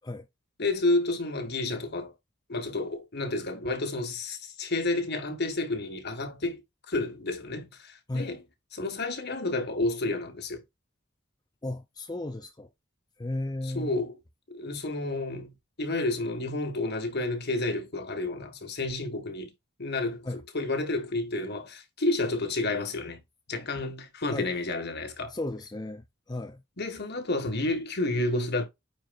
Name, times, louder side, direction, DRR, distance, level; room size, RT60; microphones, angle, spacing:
voice 1, 0.6-2.1 2.5-6.6 6.9-8.4 8.7-10.6 13.6-14.1 14.5-19.5 19.8-20.3 20.5-23.2 23.5-25.3 26.8-28.6, left 2 dB, 55° left, 1.7 m, -30 dB
voice 2, 11.6-12.7 13.2-13.9 20.2-20.4 24.3-24.5 25.3-26.6, left 2 dB, 20° left, 0.6 m, -34 dB
9.2 x 4.5 x 2.5 m
head